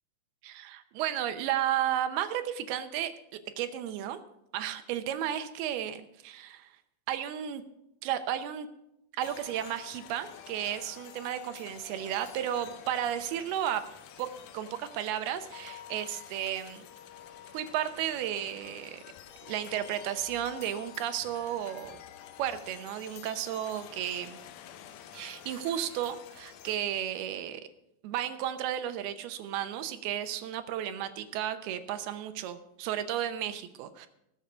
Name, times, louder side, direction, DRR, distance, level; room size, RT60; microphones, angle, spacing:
voice 1, 0.4-3.1 3.6-4.2 4.5-6.7 7.1-7.6 8.0-8.7 9.2-13.8 14.2-14.3 14.5-16.9 17.5-19.0 19.5-22.0 22.4-24.4 25.1-27.6 28.0-34.1, right 11 dB, 85° right, 10 dB, 2.9 m, -33 dB
sound 1, 9.2-26.8, left 10 dB, 75° left, 2.2 m, -49 dB
19.0 x 7.0 x 5.1 m, 0.82 s
omnidirectional pair, 4.4 m